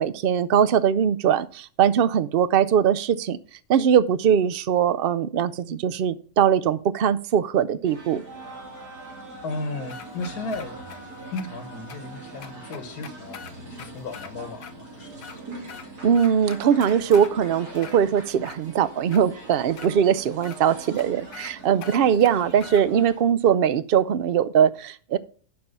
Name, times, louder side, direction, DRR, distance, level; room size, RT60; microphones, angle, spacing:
voice 1, 0.0-3.4 3.7-8.2 16.0-25.2, right 8 dB, 65° right, 0.5 m, -21 dB
sound 1, 7.8-23.2, right 2 dB, 90° right, 3.4 m, -42 dB
voice 2, 9.4-10.7 11.3-15.2, left 3 dB, 80° left, 1.6 m, -35 dB
sound 2, 9.9-11.0 11.4-11.5 11.9-12.0 12.4-14.3 14.6-14.7 15.1-15.9 16.1-17.3 17.8-18.6 19.1-19.2 19.8-19.9 20.4-20.6 21.0-21.1 21.3-21.5 21.8-22.8, left 7 dB, 65° left, 1.3 m, -42 dB
11.0 x 4.4 x 5.5 m
omnidirectional pair, 1.6 m